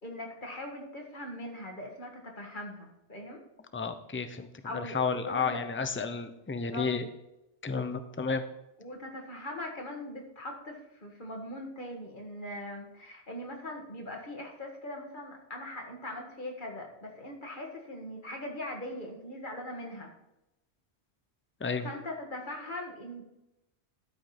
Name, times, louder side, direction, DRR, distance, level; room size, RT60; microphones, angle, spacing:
voice 1, 0.0-3.4 4.6-5.6 6.6-6.9 8.8-20.1 21.8-23.2, left 1 dB, 45° left, 1 dB, 2.0 m, -41 dB
voice 2, 3.7-4.5 4.7-7.1 7.6-8.4 21.6-21.9, left 5 dB, 15° left, 10 dB, 0.5 m, -32 dB
12.5 x 5.2 x 4.2 m, 0.92 s
omnidirectional pair, 1.1 m